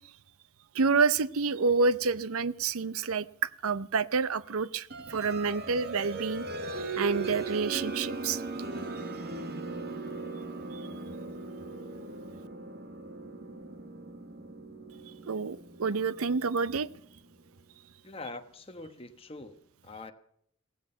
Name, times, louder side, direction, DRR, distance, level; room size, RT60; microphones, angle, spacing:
voice 1, 0.7-8.4 15.3-16.9, right 4 dB, 75° right, 18 dB, 0.6 m, -28 dB
sound 1, 4.9-17.4, right 3 dB, 45° right, 1.5 m, -39 dB
voice 2, 18.0-20.1, left 2 dB, 25° left, 6 dB, 1.2 m, -44 dB
16.0 x 14.5 x 5.6 m, 0.67 s
head